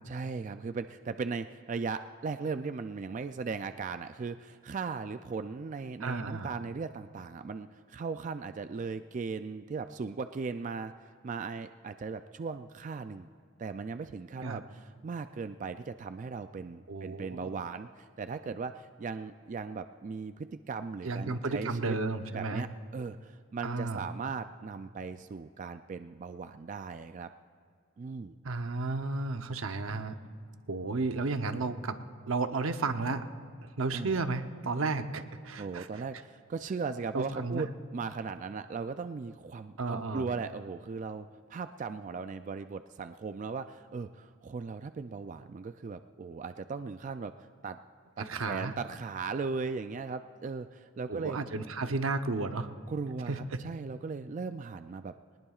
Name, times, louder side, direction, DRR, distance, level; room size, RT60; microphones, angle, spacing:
voice 1, 0.1-13.3 13.6-22.0 22.3-22.7 22.9-27.3 28.0-28.4 33.9-34.2 35.6-47.8 48.2-51.4 52.9-55.1, right 4 dB, 40° right, 10 dB, 0.3 m, -38 dB
voice 2, 6.0-6.5 14.4-14.6 16.9-17.5 21.0-22.6 23.6-24.0 28.4-30.2 30.7-32.0 32.3-33.2 33.8-36.0 37.1-37.6 39.8-40.3 48.2-48.7 51.1-52.7 53.3-53.6, right 3 dB, 85° right, 8 dB, 0.8 m, -33 dB
21.5 x 19.5 x 2.4 m, 2.1 s
head